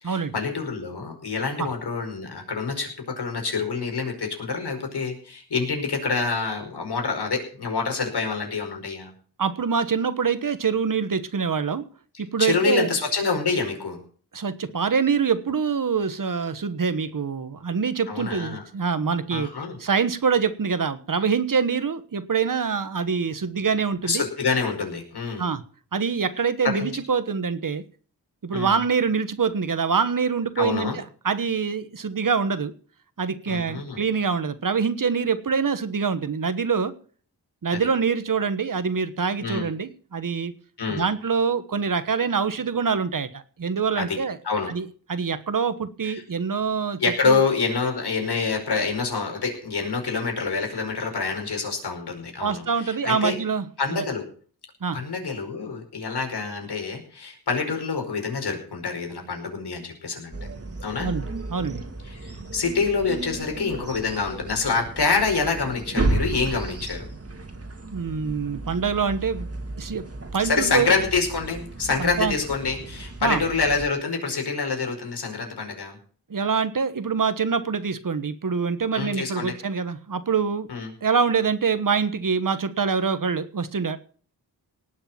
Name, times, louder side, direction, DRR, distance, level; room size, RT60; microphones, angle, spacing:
voice 1, 0.0-9.1 12.4-14.0 18.1-18.6 19.3-19.8 24.0-25.4 26.6-26.9 28.5-28.8 30.6-31.0 33.5-34.0 37.7-37.8 39.4-39.7 40.8-41.1 44.0-44.2 44.4-44.7 46.0-46.2 47.0-53.3 53.8-54.2 54.9-60.4 60.8-61.1 62.1-67.1 70.4-76.0 78.9-79.5 80.7-80.9, left 4 dB, 75° left, 3 dB, 5.1 m, -26 dB
voice 2, 9.4-11.8 12.2-12.9 14.3-19.5 19.8-24.2 25.4-25.6 25.9-27.8 28.4-32.7 33.2-36.9 37.6-40.5 40.9-44.4 44.7-47.0 47.2-47.4 52.4-53.7 53.9-54.0 54.8-55.0 61.0-61.8 67.9-69.5 69.8-70.1 70.3-70.9 72.0-72.3 73.2-73.4 76.3-80.7 81.0-84.0, right 5 dB, 55° right, 12 dB, 1.3 m, -25 dB
sound 1, 60.3-73.9, right 2 dB, 35° right, 2.2 m, -33 dB
18.5 x 6.7 x 7.4 m, 0.44 s
wide cardioid pair, 95°, 40 cm